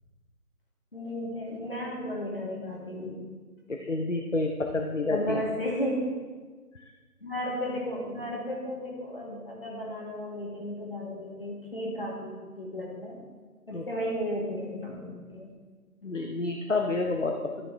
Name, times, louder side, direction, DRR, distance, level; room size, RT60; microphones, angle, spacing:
voice 1, 0.9-3.2 5.1-6.1 7.2-13.2 13.7-15.5, equal, 35° left, -4 dB, 2.0 m, -34 dB
voice 2, 3.7-5.4 13.7-13.8 16.0-17.7, left 3 dB, 55° left, 3 dB, 0.6 m, -29 dB
13.0 x 4.9 x 3.3 m, 1.4 s
figure-of-eight pair, 170°, 46 cm